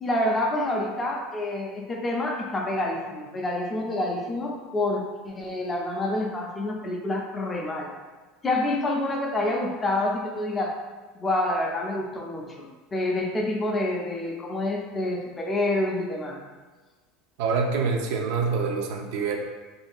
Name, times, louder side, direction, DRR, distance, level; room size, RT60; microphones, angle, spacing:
voice 1, 0.0-7.9 8.4-10.8 11.2-16.4, left 1 dB, 15° left, 0 dB, 0.3 m, -27 dB
voice 2, 17.4-19.4, right 5 dB, 65° right, 3 dB, 0.4 m, -26 dB
2.5 x 2.2 x 3.4 m, 1.3 s
cardioid pair, 160°, 0 cm